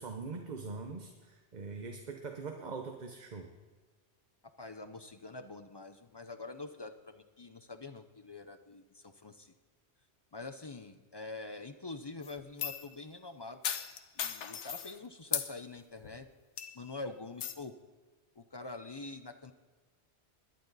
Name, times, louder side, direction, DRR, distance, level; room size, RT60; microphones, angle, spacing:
voice 1, 0.0-3.5, right 4 dB, 45° right, 4 dB, 0.9 m, -42 dB
voice 2, 4.4-9.5 10.3-13.6 14.2-16.3 16.7-17.7 18.4-19.5, left 3 dB, 35° left, 9 dB, 0.4 m, -45 dB
sound 1, 12.2-12.9 13.6-14.9 15.3-15.5 16.0-16.2 16.6-16.9 17.4-17.5, left 8 dB, 90° left, 1.1 m, -36 dB
20.5 x 10.5 x 4.0 m, 1.4 s
omnidirectional pair, 1.2 m